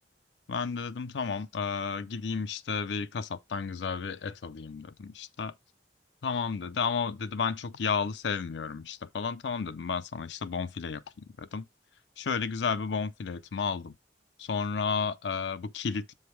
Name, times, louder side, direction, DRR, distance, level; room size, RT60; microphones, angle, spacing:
voice 1, 0.5-5.5 6.2-11.7 12.2-13.9 14.4-16.1, left 5 dB, 85° left, 0.5 m, -32 dB
7.7 x 3.4 x 4.5 m
head